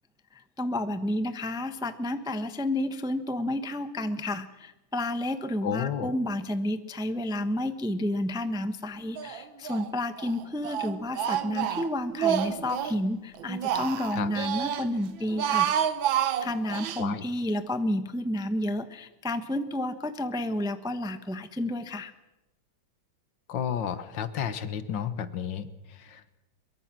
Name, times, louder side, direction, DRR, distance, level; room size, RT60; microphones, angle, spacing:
voice 1, 0.3-15.7 16.4-22.1, left 1 dB, 5° right, 10 dB, 0.6 m, -31 dB
voice 2, 5.6-6.1 14.1-14.3 17.0-17.2 23.5-26.3, left 8 dB, 70° left, 13 dB, 1.8 m, -32 dB
Speech, 9.2-9.9 10.2-13.0 13.4-14.9 15.2-17.0, right 10 dB, 85° right, 1.8 m, -29 dB
23.5 x 23.0 x 6.1 m, 0.98 s
omnidirectional pair, 2.1 m